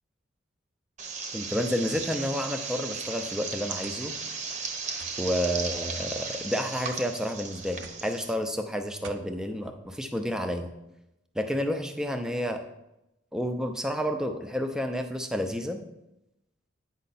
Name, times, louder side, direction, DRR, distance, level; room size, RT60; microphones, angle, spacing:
sound 1, 1.0-8.3, right 5 dB, 35° right, 0.8 m, -36 dB
voice 1, 1.3-4.1 5.2-10.7 11.3-12.6 13.3-15.8, equal, 5° right, 6 dB, 0.5 m, -30 dB
sound 2, 1.9-2.1 3.0-3.1 3.8-4.1 5.0-5.2 6.2-6.7 7.8-8.1 9.0-9.3, right 5 dB, 65° right, 0.5 m, -47 dB
9.2 x 5.5 x 4.1 m, 0.91 s
head